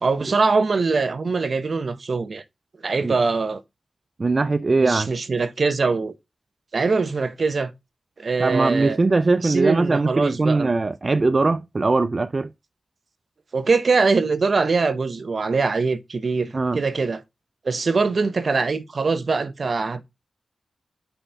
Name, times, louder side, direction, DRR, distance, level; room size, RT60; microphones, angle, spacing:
voice 1, 0.0-2.4 2.8-3.6 4.8-6.1 6.7-7.7 8.2-9.0 9.4-10.7 13.5-17.2 17.6-20.0, right 4 dB, 60° right, 0.8 m, -22 dB
voice 2, 4.2-5.1 8.4-12.5 16.5-16.8, right 3 dB, 45° right, 0.4 m, -21 dB
5.6 x 4.2 x 5.6 m
cardioid pair, 65°, 0 cm